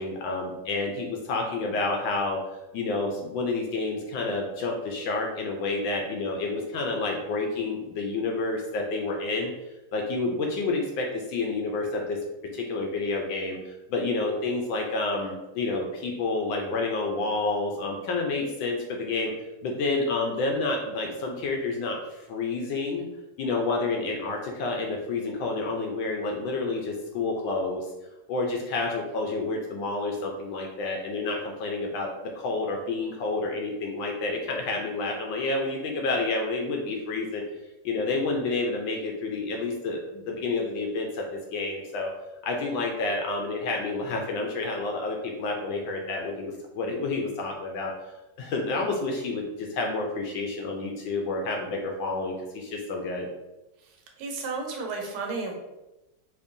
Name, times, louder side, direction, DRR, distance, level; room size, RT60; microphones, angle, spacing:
voice 1, 0.0-2.4 2.7-9.5 9.9-12.2 12.5-19.3 19.6-23.0 23.4-27.9 28.3-37.4 37.8-42.1 42.4-47.9 48.4-53.3, left 3 dB, 75° left, 1 dB, 1.2 m, -29 dB
voice 2, 53.8-55.5, right 3 dB, 80° right, 1 dB, 1.6 m, -33 dB
4.3 x 3.0 x 2.6 m, 1.0 s
omnidirectional pair, 2.4 m